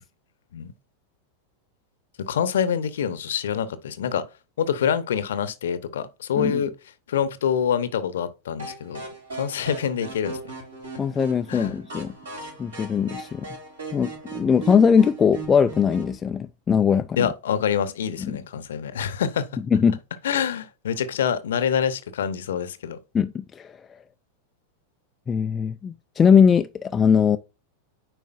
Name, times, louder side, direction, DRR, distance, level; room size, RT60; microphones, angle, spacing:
voice 1, 2.2-4.2 4.6-6.7 7.1-10.4 11.5-11.7 17.2-19.5 20.2-23.0, left 8 dB, 60° left, 0.8 m, -26 dB
sound 1, 8.6-16.2, right 3 dB, 70° right, 3.8 m, -38 dB
voice 2, 11.0-12.1 12.6-13.5 13.9-17.1 18.2-18.3 19.7-20.0 23.1-23.7 25.3-27.4, left 6 dB, 20° left, 0.3 m, -20 dB
8.9 x 4.9 x 2.5 m
figure-of-eight pair, 90°, 0 cm